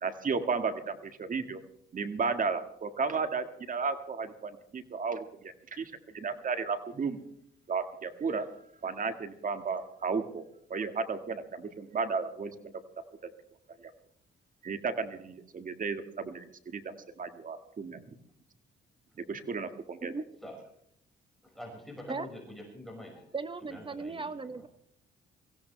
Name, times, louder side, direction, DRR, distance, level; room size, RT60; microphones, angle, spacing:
voice 1, 0.0-1.6 1.9-7.2 7.7-8.5 8.8-10.4 10.7-12.7 13.8-13.9 14.6-18.0 19.3-20.1, right 5 dB, 40° right, 8 dB, 1.8 m, -34 dB
voice 2, 21.4-23.3 23.6-24.6, left 1 dB, ahead, -1 dB, 5.5 m, -46 dB
voice 3, 23.3-24.7, right 4 dB, 25° right, 14 dB, 0.9 m, -37 dB
23.5 x 16.0 x 3.3 m, 0.71 s
cardioid pair, 90°, 20 cm